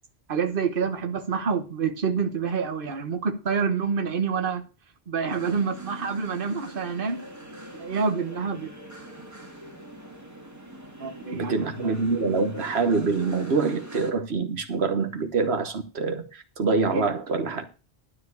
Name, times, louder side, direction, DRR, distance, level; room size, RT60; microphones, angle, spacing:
voice 1, 0.3-4.6 5.1-7.2 7.8-8.7 11.0-11.6 16.9-17.1, right 5 dB, 60° right, 1.4 m, -27 dB
sound 1, 5.3-14.1, right 1 dB, 15° right, 2.1 m, -43 dB
voice 2, 11.3-17.7, right 4 dB, 85° right, 1.5 m, -25 dB
12.5 x 4.7 x 8.1 m
omnidirectional pair, 1.0 m